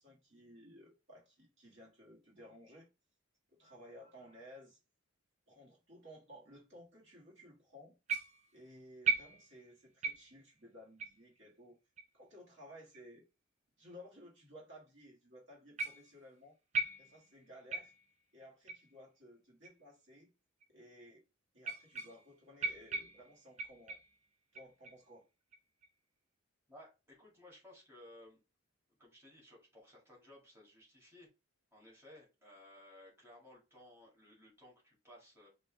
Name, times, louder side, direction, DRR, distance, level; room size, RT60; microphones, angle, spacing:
voice 1, 0.0-2.9 3.6-4.8 5.5-7.9 8.5-11.8 12.1-13.2 13.8-16.6 17.0-17.9 18.3-20.3 20.7-21.2 21.5-24.0 24.5-25.3, equal, 60° right, 1.6 m, -56 dB
sound 1, 8.1-8.6 9.0-9.7 10.0-10.4 11.0-11.2 12.0-12.1 12.9-13.0 13.9-14.0 15.8-16.2 16.7-17.3 17.7-18.1 18.7-18.9 19.6-19.7 20.6-20.7 21.6-22.3 22.6-24.2 24.5-25.0 25.5-25.9, right 4 dB, 30° right, 0.5 m, -39 dB
voice 2, 26.7-28.4 29.0-31.3 31.7-35.5, left 1 dB, 10° right, 2.0 m, -58 dB
5.3 x 2.6 x 3.4 m
head